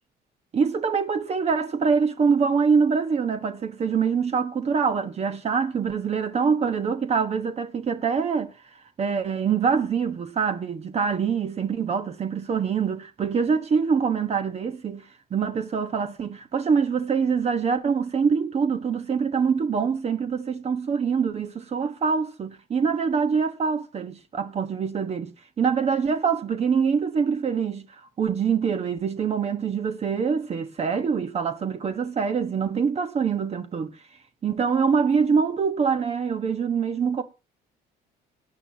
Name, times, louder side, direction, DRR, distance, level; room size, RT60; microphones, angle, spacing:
voice 1, 0.5-8.5 9.0-34.0 34.4-37.2, right 6 dB, 40° right, 1.2 m, -24 dB
18.0 x 9.5 x 2.9 m
cardioid pair, 110°, 17 cm